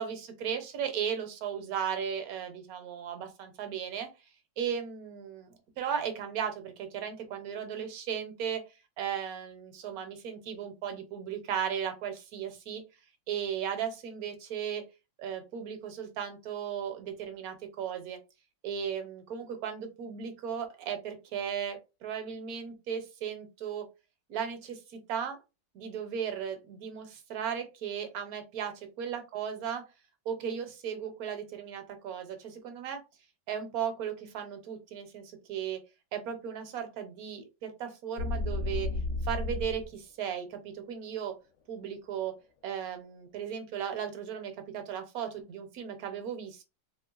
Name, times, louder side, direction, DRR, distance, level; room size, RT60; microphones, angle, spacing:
voice 1, 0.0-4.1 4.6-8.6 9.0-12.8 13.3-14.8 15.2-18.2 18.6-23.9 24.3-25.4 25.7-29.8 30.3-33.0 33.5-35.8 36.1-38.9 39.2-41.4 41.7-42.3 42.6-46.6, right 8 dB, 65° right, 6 dB, 1.1 m, -36 dB
sound 1, 38.2-39.9, left 2 dB, 70° left, 0.7 m, -32 dB
3.2 x 3.0 x 2.3 m, 0.27 s
omnidirectional pair, 1.8 m